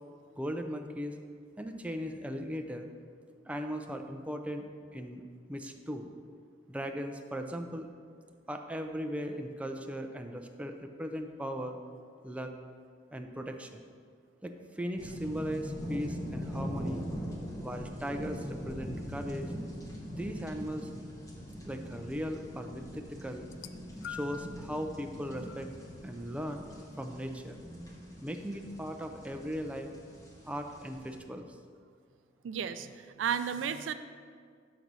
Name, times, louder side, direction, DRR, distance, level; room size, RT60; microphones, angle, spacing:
voice 1, 0.4-1.1 1.6-2.9 3.5-4.7 4.9-5.2 5.5-6.1 6.7-7.9 8.5-11.8 12.2-12.5 13.1-13.8 14.4-17.1 17.6-19.5 20.1-20.9 21.6-23.5 24.1-25.7 26.0-26.7 27.0-27.6 28.2-29.9 30.4-31.5, equal, 5° right, 5 dB, 0.3 m, -38 dB
sound 1, 15.0-31.2, equal, 20° left, 1.0 m, -42 dB
sound 2, 23.4-24.6 25.5-25.7 26.7-26.8, left 6 dB, 80° left, 0.3 m, -44 dB
voice 2, 32.4-33.9, right 8 dB, 85° right, 11 dB, 0.3 m, -33 dB
6.2 x 4.0 x 6.0 m, 2.1 s
head